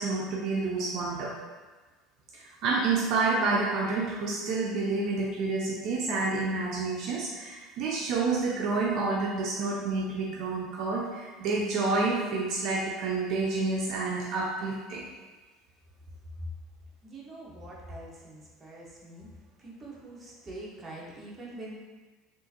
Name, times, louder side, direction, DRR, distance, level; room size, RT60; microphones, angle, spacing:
voice 1, 0.0-1.4 2.3-15.1, right 3 dB, 60° right, -2 dB, 0.4 m, -29 dB
voice 2, 17.0-21.8, right 1 dB, 20° right, -4 dB, 0.9 m, -44 dB
3.6 x 2.5 x 2.8 m, 1.3 s
supercardioid pair, 100°, 0 cm